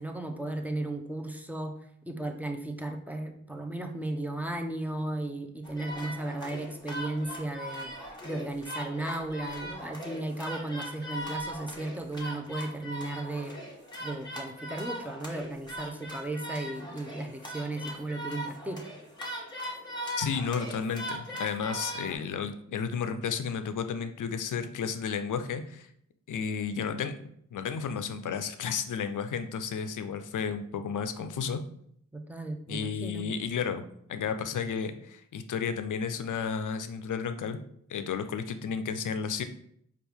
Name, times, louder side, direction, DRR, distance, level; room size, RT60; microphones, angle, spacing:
voice 1, 0.0-1.8 2.1-7.9 8.2-13.6 14.0-18.8 32.1-33.3, right 2 dB, 5° right, 4 dB, 0.6 m, -35 dB
sound 1, 5.6-22.2, equal, 15° left, 1.3 m, -40 dB
voice 2, 20.2-25.9 26.3-27.1 27.5-31.6 32.7-37.6 37.9-39.4, left 6 dB, 70° left, 9 dB, 0.5 m, -32 dB
4.4 x 2.5 x 3.4 m, 0.68 s
cardioid pair, 45°, 32 cm